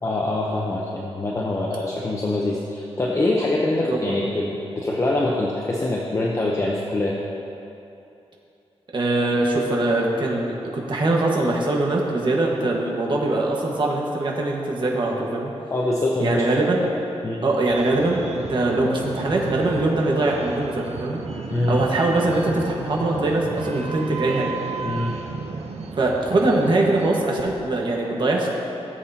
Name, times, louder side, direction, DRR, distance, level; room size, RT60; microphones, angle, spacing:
voice 1, 0.0-7.2 12.6-12.7 15.7-16.4 17.2-17.4 21.5-21.8 24.8-25.1, left 2 dB, 25° left, -2 dB, 0.8 m, -24 dB
voice 2, 8.9-15.5 16.2-16.8 17.4-21.2 21.7-24.5 26.0-28.5, right 2 dB, 50° right, -2 dB, 1.4 m, -22 dB
sound 1, 17.7-27.2, right 4 dB, 80° right, 0.7 m, -33 dB
17.0 x 7.8 x 2.8 m, 2.8 s
wide cardioid pair, 150°, 11 cm